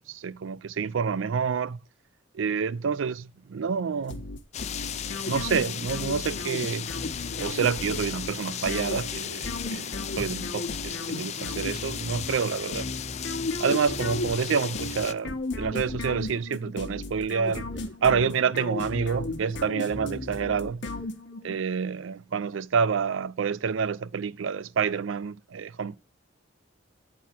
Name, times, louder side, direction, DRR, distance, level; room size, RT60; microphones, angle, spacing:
voice 1, 0.0-1.8 2.3-4.2 5.3-6.9 7.4-12.9 13.6-17.7 18.0-20.9 21.4-26.0, right 6 dB, 75° right, 0.4 m, -28 dB
sound 1, 4.1-21.6, left 2 dB, 60° left, 1.2 m, -35 dB
sound 2, 4.5-15.1, left 9 dB, 35° left, 0.4 m, -36 dB
9.3 x 4.2 x 5.8 m
head